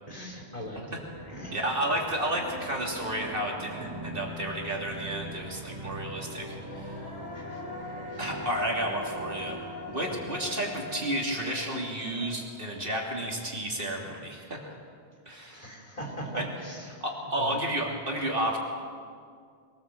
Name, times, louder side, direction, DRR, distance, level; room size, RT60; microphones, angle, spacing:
voice 1, 0.1-1.0 1.3-1.6 3.7-4.1 5.9-6.1 7.3-7.6 8.1-8.2 10.1-10.4 15.5-17.6, equal, 35° left, -1 dB, 3.9 m, -41 dB
Human voice, 0.6-0.7 1.1-4.8 6.4-13.7, left 2 dB, 85° left, 6.3 m, -45 dB
sound 1, 0.8-11.4, right 1 dB, 25° right, 4.1 m, -42 dB
voice 2, 1.5-7.0 8.2-9.6 9.9-14.7 15.3-15.6 16.3-16.5 17.0-18.6, right 1 dB, 55° right, -1 dB, 3.1 m, -31 dB
23.0 x 18.5 x 7.7 m, 2.2 s
omnidirectional pair, 1.1 m